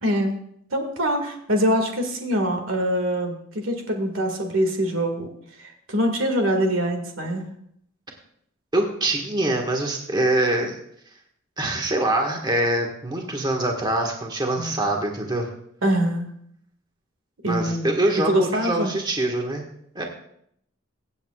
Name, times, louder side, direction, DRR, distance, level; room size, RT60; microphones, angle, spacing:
voice 1, 0.0-0.3 0.7-5.3 5.6-7.5 14.5-14.8 15.8-16.3 17.4-17.9 18.1-18.9, equal, 75° right, 4 dB, 1.9 m, -24 dB
voice 2, 8.7-10.8 11.6-15.5 17.5-19.6 19.9-20.0, right 1 dB, 20° right, 1 dB, 1.6 m, -24 dB
24.0 x 8.2 x 2.4 m, 0.69 s
head